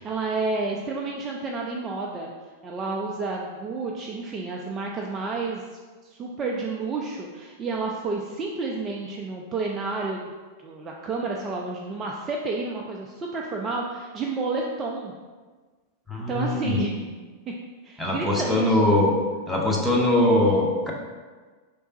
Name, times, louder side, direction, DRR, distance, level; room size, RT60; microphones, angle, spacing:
voice 1, 0.0-2.3 2.6-5.6 6.1-10.3 10.6-15.1 16.3-16.9 17.8-18.9, right 3 dB, 25° right, -1 dB, 0.4 m, -30 dB
voice 2, 16.1-16.9 18.0-19.1 19.5-20.9, left 1 dB, ahead, -4 dB, 0.8 m, -21 dB
5.3 x 3.4 x 2.8 m, 1.4 s
figure-of-eight pair, 95°, 0 cm